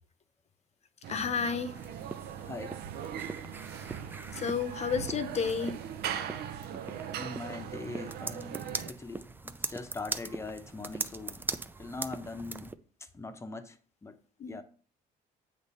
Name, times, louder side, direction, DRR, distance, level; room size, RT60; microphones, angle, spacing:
sound 1, 1.0-8.9, right 9 dB, 70° right, 0.6 m, -40 dB
voice 1, 1.1-1.8 4.3-5.8 14.4-14.6, left 6 dB, 40° left, 0.8 m, -31 dB
sound 2, 1.7-12.7, right 3 dB, 10° right, 0.4 m, -41 dB
voice 2, 2.4-2.8 7.1-11.5 11.8-12.7 13.0-14.2 14.4-14.6, left 3 dB, 15° left, 0.8 m, -42 dB
8.0 x 3.3 x 5.5 m
cardioid pair, 110°, 17 cm